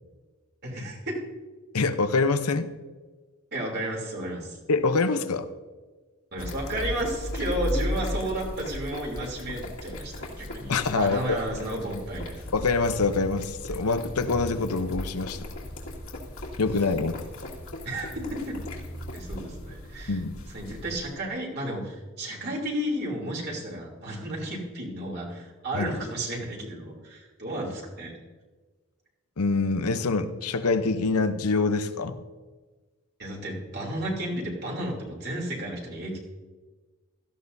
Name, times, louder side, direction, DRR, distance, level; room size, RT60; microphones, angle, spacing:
voice 1, 0.6-1.2 3.5-4.6 6.3-12.4 17.8-18.6 19.1-20.2 20.5-28.1 33.2-36.2, right 1 dB, 45° right, -1 dB, 3.1 m, -32 dB
voice 2, 1.7-2.7 4.7-5.5 10.7-11.4 12.5-15.4 16.6-17.2 20.1-20.4 25.7-25.9 29.4-32.2, left 3 dB, 90° left, 9 dB, 0.8 m, -25 dB
sound 1, 6.4-21.2, left 1 dB, 70° left, 2.2 m, -36 dB
17.0 x 14.0 x 2.7 m, 1.3 s
head